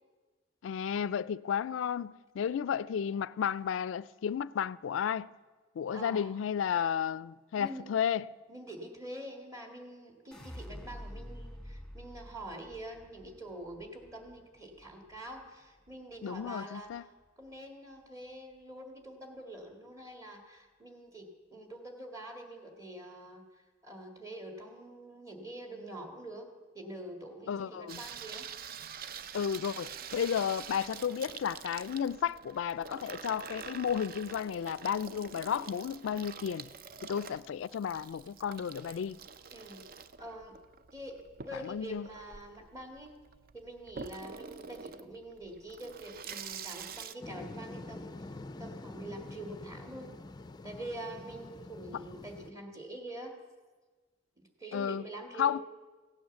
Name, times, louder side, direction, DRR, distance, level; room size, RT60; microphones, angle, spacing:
voice 1, 0.6-5.3 5.8-8.2 16.2-17.0 27.5-28.0 29.3-36.7 37.0-39.2 41.6-42.1 54.7-55.0 55.4-55.6, left 8 dB, 85° left, 0.3 m, -33 dB
voice 2, 5.9-6.3 7.6-7.9 8.5-17.0 17.4-26.5 26.7-28.5 39.5-39.9 40.2-40.6 40.9-43.2 43.5-48.3 48.6-50.1 50.6-53.4 54.4-55.6, right 1 dB, 20° right, 1.9 m, -45 dB
sound 1, 10.3-16.5 16.9-17.5, equal, 5° left, 1.5 m, -49 dB
Water tap faucet / Sink (filling or washing), 27.9-47.1, right 7 dB, 50° right, 0.5 m, -46 dB
sound 2, 47.2-52.5, left 2 dB, 20° left, 0.4 m, -46 dB
16.0 x 8.8 x 7.0 m
head